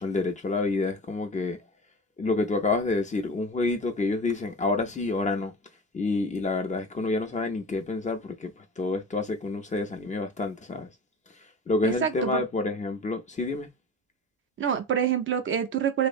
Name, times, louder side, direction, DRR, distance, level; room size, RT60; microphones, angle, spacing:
voice 1, 0.0-1.6 2.2-5.5 5.9-10.9 11.7-13.7, left 3 dB, 25° left, 0.4 m, -28 dB
voice 2, 11.8-12.4 14.6-16.1, right 8 dB, 40° right, 0.4 m, -26 dB
2.5 x 2.0 x 2.4 m
cardioid pair, 90°, 30 cm